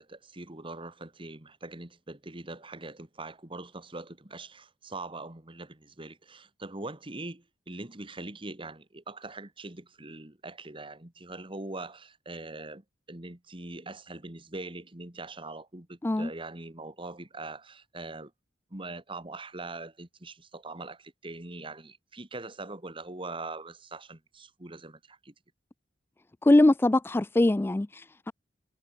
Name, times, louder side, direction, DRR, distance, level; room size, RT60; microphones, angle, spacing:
voice 1, 0.0-18.3 18.7-25.3, right 2 dB, 30° right, 2.0 m, -42 dB
voice 2, 26.4-28.3, left 1 dB, 10° left, 0.3 m, -22 dB
head